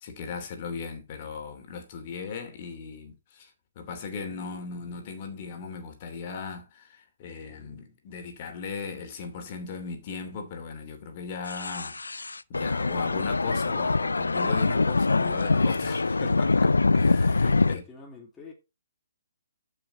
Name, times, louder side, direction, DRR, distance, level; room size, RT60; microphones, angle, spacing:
voice 1, 0.0-3.5 3.8-17.8, left 5 dB, 40° left, 2.8 m, -37 dB
sound 1, 11.5-17.8, left 3 dB, 90° left, 0.4 m, -24 dB
voice 2, 17.2-18.5, left 3 dB, 15° left, 2.2 m, -46 dB
12.5 x 5.8 x 4.1 m
hypercardioid pair, 140°, 0 cm